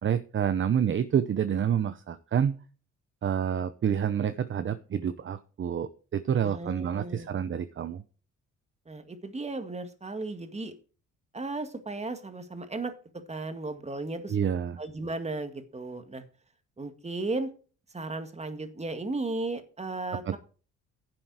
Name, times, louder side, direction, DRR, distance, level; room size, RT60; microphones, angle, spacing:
voice 1, 0.0-2.6 3.2-8.0 14.3-14.8 20.3-20.4, right 8 dB, 40° right, 12 dB, 0.8 m, -28 dB
voice 2, 6.4-7.3 8.9-10.7 11.3-12.9 13.3-14.4 14.8-16.2 16.8-17.5 17.9-20.4, right 2 dB, 20° right, 9 dB, 1.9 m, -35 dB
10.5 x 7.7 x 4.9 m, 0.38 s
cardioid pair, 90°, 30 cm